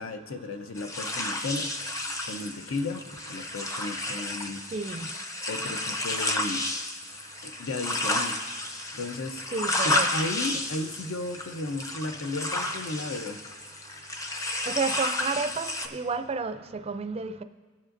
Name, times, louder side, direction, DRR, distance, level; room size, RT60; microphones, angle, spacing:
voice 1, 0.0-1.7 2.2-4.6 5.5-6.7 7.4-8.4 8.9-9.4 9.8-13.4, left 2 dB, 70° left, 0.7 m, -34 dB
sound 1, 0.8-15.9, left 1 dB, 15° left, 0.6 m, -32 dB
voice 2, 4.7-5.1 9.5-10.1 14.7-17.4, right 4 dB, 30° right, 0.4 m, -31 dB
18.5 x 7.4 x 2.6 m
head